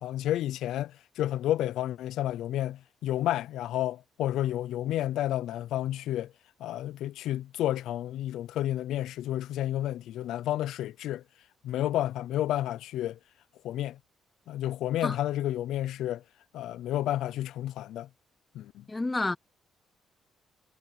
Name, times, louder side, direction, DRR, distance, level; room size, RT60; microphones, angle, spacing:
voice 1, 0.0-6.3 6.6-11.2 11.6-13.2 13.6-14.0 14.5-16.2 16.5-18.1 18.5-18.8, left 13 dB, 85° left, 0.5 m, -31 dB
voice 2, 18.9-19.4, left 2 dB, 20° left, 0.4 m, -29 dB
cardioid pair, 90°, 0 cm